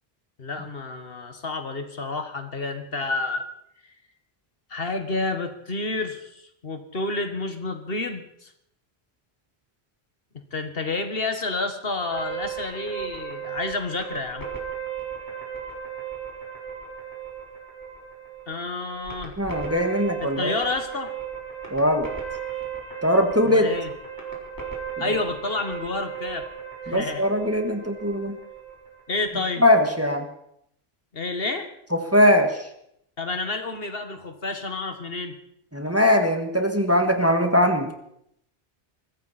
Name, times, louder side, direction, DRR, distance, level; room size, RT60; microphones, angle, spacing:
voice 1, 0.4-3.4 4.7-8.5 10.3-14.5 18.5-19.4 20.2-21.1 23.4-23.9 25.0-26.5 26.9-27.3 29.1-29.6 31.1-31.7 33.2-35.4, left 3 dB, 65° left, 7 dB, 1.8 m, -30 dB
sound 1, 12.1-29.2, right 8 dB, 20° left, 4.0 m, -36 dB
voice 2, 19.4-20.5 21.7-22.1 23.0-23.7 26.9-28.4 29.6-30.3 32.1-32.6 35.7-37.9, left 1 dB, 15° right, 4 dB, 1.7 m, -20 dB
23.0 x 14.5 x 4.3 m, 0.74 s
omnidirectional pair, 1.1 m